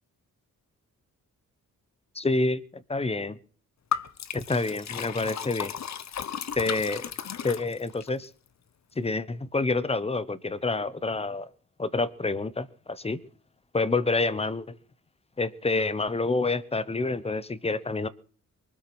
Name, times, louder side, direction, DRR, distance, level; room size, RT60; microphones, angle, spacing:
voice 1, 2.1-3.4 4.3-5.7 6.5-7.0 7.4-8.3 9.0-11.5 11.8-13.2 13.7-14.7 15.4-18.1, left 3 dB, 20° left, 16 dB, 1.0 m, -28 dB
Liquid, 3.9-8.1, left 8 dB, 55° left, 1.0 m, -34 dB
23.5 x 8.6 x 6.2 m, 0.43 s
wide cardioid pair, 165°, 34 cm